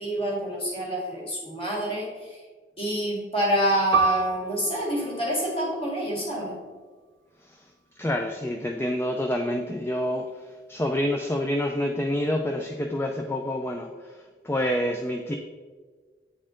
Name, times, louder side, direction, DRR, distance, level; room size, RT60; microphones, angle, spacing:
voice 1, 0.0-2.4 2.8-6.6, equal, 30° left, -4 dB, 1.9 m, -27 dB
Piano, 3.9-9.0 9.3-9.5 10.2-10.6, right 4 dB, 85° right, 0.3 m, -31 dB
voice 2, 8.0-15.4, left 1 dB, 15° left, 3 dB, 0.3 m, -28 dB
8.6 x 4.2 x 3.7 m, 1.5 s
head